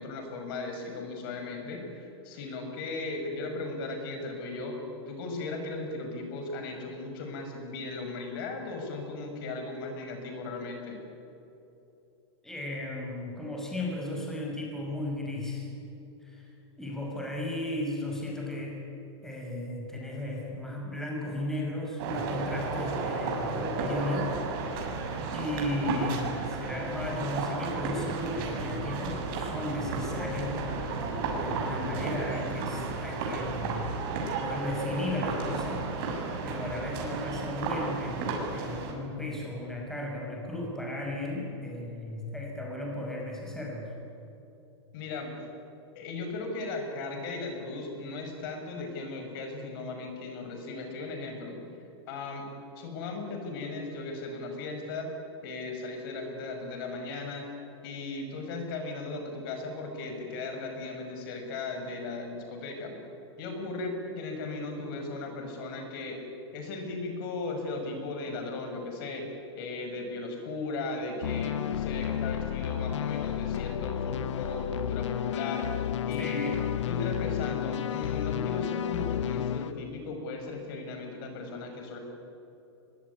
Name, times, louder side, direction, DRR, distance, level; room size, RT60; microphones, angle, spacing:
voice 1, 0.0-4.8 5.1-11.0 44.9-45.3 45.9-51.6 52.1-52.5 52.8-55.1 55.4-57.4 57.8-63.0 63.4-75.7 76.1-76.5 76.9-82.0, left 3 dB, 50° left, 4 dB, 6.3 m, -37 dB
voice 2, 12.4-15.7 16.2-16.5 16.8-18.8 19.2-25.0 25.3-30.6 31.3-33.9 34.4-35.9 36.4-43.9 76.2-76.6, left 1 dB, 5° left, -2 dB, 6.1 m, -35 dB
sound 1, 22.0-38.9, right 3 dB, 50° right, 7.0 m, -33 dB
sound 2, 71.2-79.7, left 10 dB, 90° left, 1.0 m, -31 dB
23.5 x 23.0 x 10.0 m, 3.0 s
supercardioid pair, 145°, 15 cm